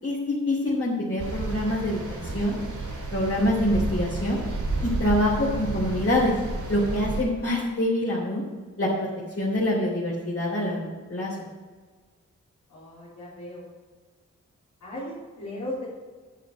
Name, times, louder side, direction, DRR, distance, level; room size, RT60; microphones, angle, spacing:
voice 1, 0.0-2.5 3.1-4.4 4.8-6.3 6.7-8.4 8.8-9.1 9.4-10.8 11.1-11.3, left 1 dB, 50° left, -5 dB, 3.3 m, -25 dB
sound 1, 1.2-7.2, right 2 dB, 85° right, 3.3 m, -31 dB
voice 2, 12.7-13.6 14.8-15.8, left 1 dB, 90° left, -9 dB, 3.5 m, -37 dB
10.0 x 8.6 x 5.2 m, 1.5 s
cardioid pair, 50°, 29 cm